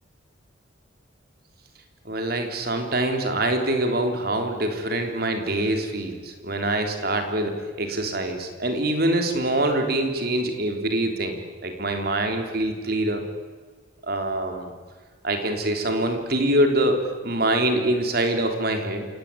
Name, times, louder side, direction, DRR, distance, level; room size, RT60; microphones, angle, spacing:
voice 1, 2.1-11.4 11.6-13.2 14.0-14.7 15.2-19.1, right 1 dB, 50° right, 5 dB, 3.4 m, -24 dB
28.0 x 17.5 x 9.7 m, 1.5 s
head